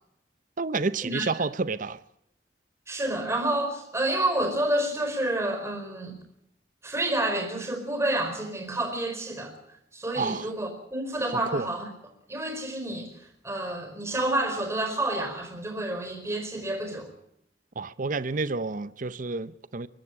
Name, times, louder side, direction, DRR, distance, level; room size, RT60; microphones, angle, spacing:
voice 1, 0.6-2.0 10.2-10.5 11.5-11.7 17.8-19.9, right 3 dB, 50° right, 0.7 m, -29 dB
voice 2, 2.9-6.2 6.8-9.5 9.9-11.9 12.3-13.1 13.4-17.1, right 1 dB, 15° right, 4.7 m, -29 dB
23.5 x 12.5 x 9.9 m
head